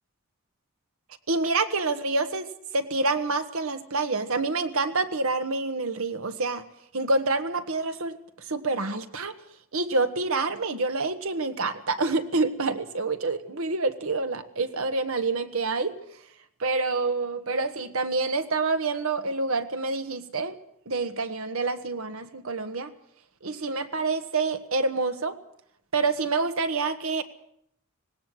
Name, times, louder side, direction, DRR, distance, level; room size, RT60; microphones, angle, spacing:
voice 1, 1.3-6.6 6.9-8.2 8.5-9.3 9.7-16.0 16.6-20.6 20.8-22.9 23.4-25.4 25.9-27.2, right 3 dB, 80° right, 8 dB, 1.6 m, -27 dB
18.5 x 17.5 x 7.9 m, 0.72 s
head